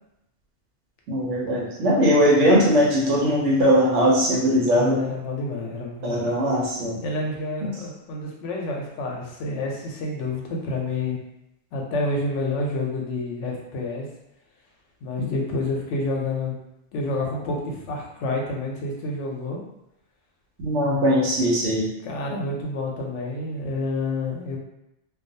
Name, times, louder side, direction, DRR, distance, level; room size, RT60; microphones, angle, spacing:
voice 1, 1.1-5.0 6.0-7.0 20.6-21.9, equal, 85° right, -2 dB, 1.0 m, -20 dB
voice 2, 4.6-6.3 7.0-11.2 11.7-14.1 15.0-16.5 16.9-19.6 22.0-24.6, left 2 dB, 80° left, 0 dB, 0.9 m, -29 dB
2.4 x 2.2 x 2.6 m, 0.84 s
omnidirectional pair, 1.2 m